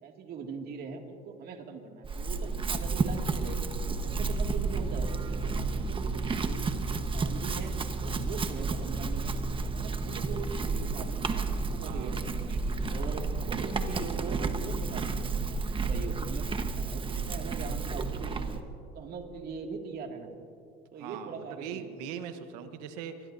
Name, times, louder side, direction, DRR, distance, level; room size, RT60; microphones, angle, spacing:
voice 1, 0.0-3.6 3.8-6.6 6.9-9.3 9.6-12.5 12.9-18.7 18.9-20.3 20.9-21.9, right 5 dB, 55° right, 3 dB, 2.3 m, -41 dB
Chewing mastication / Livestock farm animals working animals, 2.0-18.6, right 4 dB, 30° right, 1.2 m, -31 dB
voice 2, 11.8-12.9 21.0-23.3, right 8 dB, 85° right, 8 dB, 1.2 m, -42 dB
26.0 x 20.0 x 2.7 m, 2.4 s
supercardioid pair, 90°, 19 cm